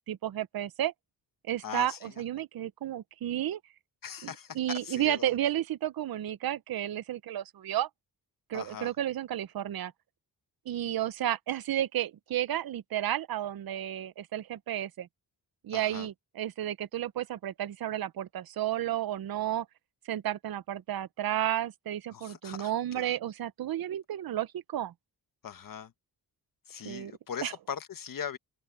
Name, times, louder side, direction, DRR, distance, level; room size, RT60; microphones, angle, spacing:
voice 1, 0.1-0.9 1.5-3.6 4.2-7.9 8.5-9.9 10.7-15.1 15.6-19.7 20.1-24.9 26.8-27.1 27.4-27.5, right 12 dB, 65° right, 0.7 m, -32 dB
voice 2, 1.6-2.1 4.0-5.4 8.5-8.9 15.7-16.1 22.1-23.2 25.4-25.9 26.7-28.4, left 8 dB, 55° left, 1.5 m, -40 dB
open air
wide cardioid pair, 165°, 39 cm